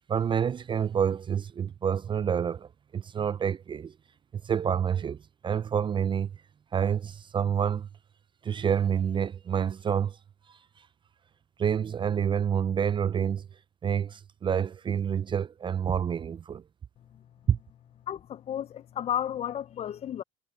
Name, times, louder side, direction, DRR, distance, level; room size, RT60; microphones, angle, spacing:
voice 1, 0.1-3.9 4.3-6.3 6.7-7.9 8.4-10.2 10.5-10.6 11.6-13.5 13.8-16.6 17.5-17.6, right 8 dB, 25° right, 0.5 m, -28 dB
voice 2, 18.1-20.2, left 10 dB, 35° left, 0.6 m, -33 dB
hypercardioid pair, 90°, 18 cm